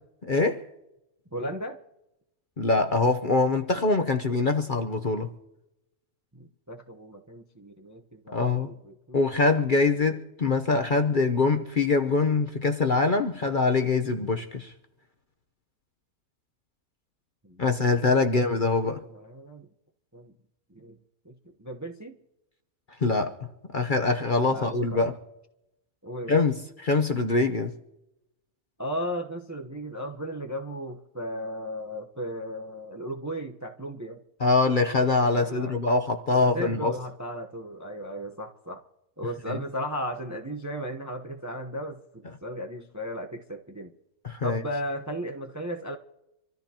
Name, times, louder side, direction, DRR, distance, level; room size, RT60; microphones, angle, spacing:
voice 1, 0.2-0.6 2.6-5.3 8.3-8.7 9.1-14.7 17.6-19.0 23.0-23.4 23.7-25.1 26.3-27.7 34.4-36.9 39.5-39.6 44.2-44.6, left 3 dB, 40° left, 0.9 m, -24 dB
voice 2, 1.3-1.8 6.3-9.5 17.4-18.4 18.8-19.7 20.1-20.3 20.7-21.0 21.2-22.2 24.5-25.1 26.0-26.4 28.8-34.2 35.3-35.8 36.3-38.8 39.2-43.9 44.4-46.0, equal, 15° right, 0.7 m, -36 dB
26.5 x 14.0 x 2.9 m
omnidirectional pair, 1.6 m